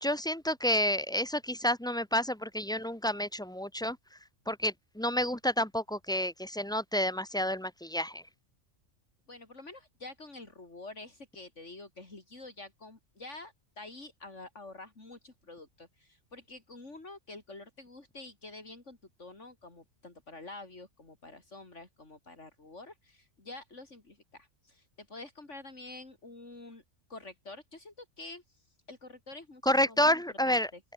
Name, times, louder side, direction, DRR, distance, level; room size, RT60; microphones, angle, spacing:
voice 1, 0.0-4.0 4.5-8.2 29.6-30.7, equal, 5° left, 0.7 m, -29 dB
voice 2, 9.3-26.8 27.1-30.8, left 2 dB, 70° left, 4.5 m, -48 dB
open air
omnidirectional pair, 1.3 m